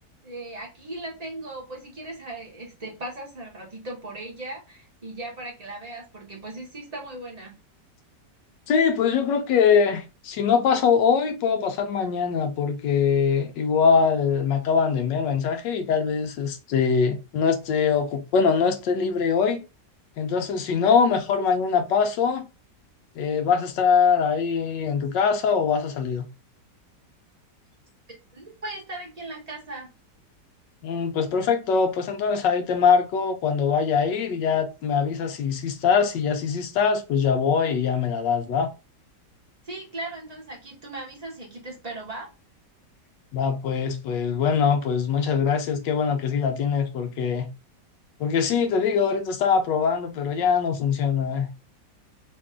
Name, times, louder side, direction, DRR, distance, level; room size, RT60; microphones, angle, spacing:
voice 1, 0.2-7.5 28.3-29.9 39.6-42.3, right 2 dB, 25° right, 1.0 m, -38 dB
voice 2, 8.7-19.6 20.2-22.5 23.2-26.3 30.8-38.7 43.3-47.5 48.2-51.5, left 6 dB, 80° left, 1.3 m, -23 dB
3.3 x 2.6 x 3.4 m
omnidirectional pair, 1.9 m